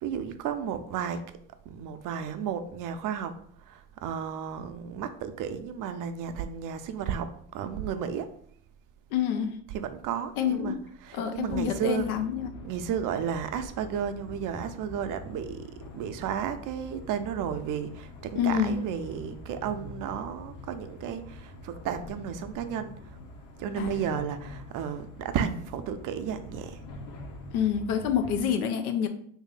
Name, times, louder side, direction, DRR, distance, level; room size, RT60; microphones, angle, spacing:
voice 1, 0.0-1.2 1.7-8.3 9.7-12.2 12.6-23.2 23.6-26.8, right 8 dB, 50° right, 0.5 m, -33 dB
voice 2, 9.1-9.6 10.4-10.8 11.1-12.5 18.4-18.8 23.8-24.0 27.5-29.1, left 8 dB, 90° left, 0.6 m, -27 dB
sound 1, 11.4-28.5, left 1 dB, 50° left, 0.8 m, -45 dB
3.1 x 2.7 x 3.7 m
hypercardioid pair, 75°, 43 cm